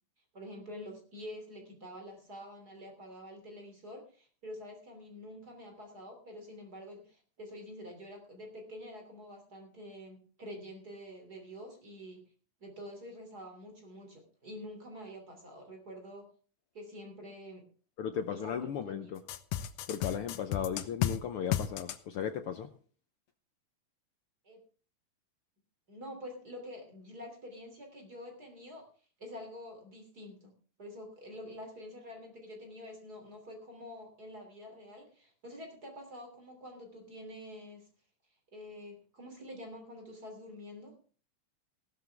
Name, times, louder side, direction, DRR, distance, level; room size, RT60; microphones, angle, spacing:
voice 1, 0.3-12.2 12.6-16.3 16.7-17.6 18.3-18.6 18.8-19.1 24.4-24.6 25.9-28.9 29.2-30.5 30.8-37.9 38.5-41.0, equal, 30° right, 4 dB, 3.4 m, -47 dB
voice 2, 18.0-19.2 19.9-22.7, left 8 dB, 75° left, 8 dB, 1.3 m, -36 dB
sound 1, 19.3-21.2 21.5-22.0, left 11 dB, 90° left, 2.4 m, -32 dB
15.5 x 13.0 x 3.5 m, 0.40 s
omnidirectional pair, 3.5 m